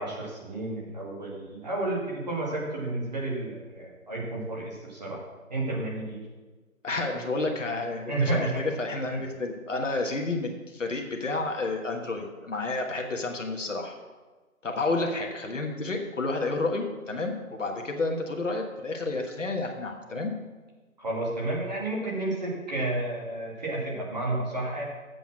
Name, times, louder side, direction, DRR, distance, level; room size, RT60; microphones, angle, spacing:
voice 1, 0.0-5.2 5.5-6.2 8.1-8.6 9.1-9.2 21.0-24.8, right 2 dB, 30° right, -5 dB, 2.3 m, -31 dB
voice 2, 6.8-13.9 14.6-20.3, left 3 dB, 60° left, 2 dB, 1.5 m, -30 dB
7.9 x 7.0 x 6.2 m, 1.3 s
figure-of-eight pair, 165°, 43 cm